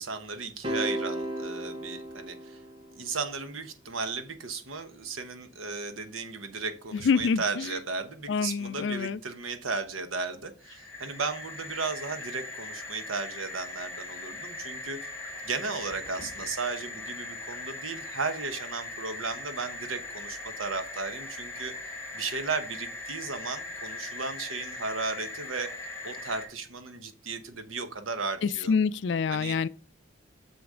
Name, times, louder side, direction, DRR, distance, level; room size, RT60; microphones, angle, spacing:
voice 1, 0.0-2.6 2.9-15.1 15.4-21.7 22.1-25.7 26.0-28.7 29.3-29.6, right 4 dB, 85° right, 1.0 m, -35 dB
sound 1, 0.6-3.1, right 1 dB, 25° right, 0.8 m, -34 dB
voice 2, 6.9-7.7 8.3-9.2 28.4-29.7, left 5 dB, 60° left, 0.4 m, -27 dB
sound 2, 10.6-26.5, left 2 dB, 15° left, 2.9 m, -40 dB
7.0 x 6.4 x 3.8 m
head